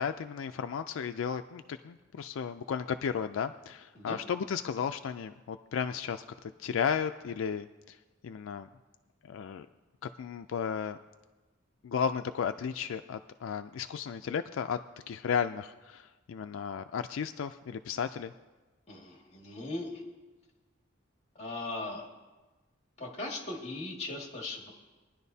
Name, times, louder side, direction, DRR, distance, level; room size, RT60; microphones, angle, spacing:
voice 1, 0.0-8.0 8.2-8.7 9.2-9.7 10.2-11.0 11.8-14.8 15.1-18.3, left 7 dB, 80° left, 8 dB, 0.3 m, -34 dB
voice 2, 18.9-20.0 21.4-22.1 23.0-24.7, left 2 dB, 30° left, 0 dB, 2.0 m, -38 dB
21.0 x 10.5 x 2.7 m, 1.2 s
head